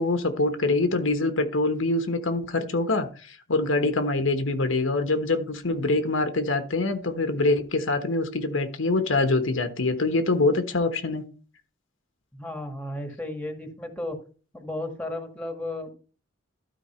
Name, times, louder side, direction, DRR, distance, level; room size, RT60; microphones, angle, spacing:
voice 1, 0.0-11.3, left 2 dB, 75° left, 1.2 m, -24 dB
voice 2, 12.3-14.2 14.5-15.9, left 1 dB, 5° left, 1.8 m, -34 dB
12.5 x 4.7 x 4.4 m
head